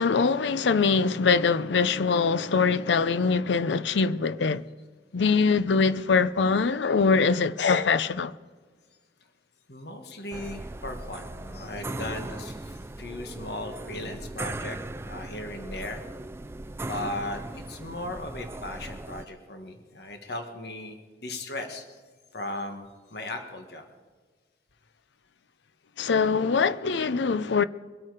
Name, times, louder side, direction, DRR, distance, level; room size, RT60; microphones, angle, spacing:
voice 1, 0.0-4.6 5.1-8.3 26.0-27.6, left 5 dB, 80° left, 0.5 m, -23 dB
voice 2, 9.7-16.0 16.8-21.0 21.2-22.0 22.3-23.8, left 1 dB, 60° left, 1.5 m, -37 dB
sound 1, 10.3-19.3, right 2 dB, 15° right, 0.3 m, -38 dB
23.5 x 8.7 x 4.9 m
head